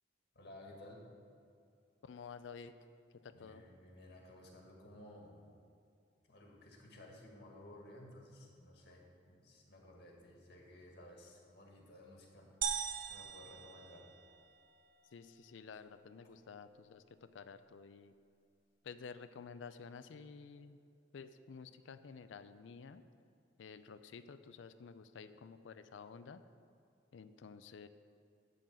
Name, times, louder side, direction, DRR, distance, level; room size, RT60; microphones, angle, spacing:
voice 1, 0.3-1.0 3.3-5.4 6.3-12.5 13.1-14.1, left 1 dB, 65° left, 0 dB, 1.8 m, -56 dB
voice 2, 2.0-2.8 3.2-3.6 15.1-17.0 17.3-18.1 18.8-20.8 21.1-23.0 23.6-26.4 27.1-27.9, left 5 dB, 90° left, 11 dB, 0.4 m, -51 dB
sound 1, 12.6-14.6, right 8 dB, 50° right, 0.6 m, -40 dB
11.5 x 3.9 x 7.8 m, 2.5 s
head